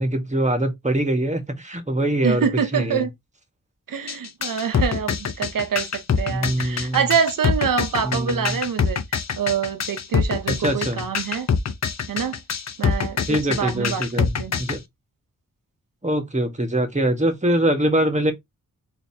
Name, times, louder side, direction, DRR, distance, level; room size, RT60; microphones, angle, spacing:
voice 1, 0.0-2.5 2.7-3.1 6.3-7.0 8.0-8.6 10.5-11.0 13.2-14.8 16.0-18.3, right 1 dB, 20° right, 1.3 m, -23 dB
voice 2, 2.2-3.1 3.9-9.0 9.4-11.5 12.1-12.4 12.8-14.5, right 7 dB, 70° right, 0.8 m, -25 dB
sound 1, 4.1-14.8, left 6 dB, 50° left, 0.7 m, -24 dB
4.0 x 2.8 x 2.7 m
cardioid pair, 45°, 34 cm